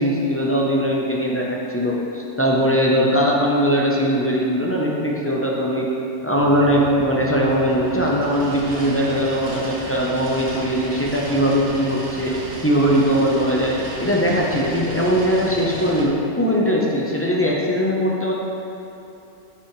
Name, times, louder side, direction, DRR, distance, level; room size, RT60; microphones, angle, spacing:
voice 1, 0.0-5.9 6.2-12.4 12.6-18.3, equal, 15° left, -4 dB, 0.7 m, -20 dB
sound 1, 6.4-16.0, right 1 dB, 55° right, 1.3 m, -34 dB
9.7 x 5.7 x 3.2 m, 3.0 s
omnidirectional pair, 1.3 m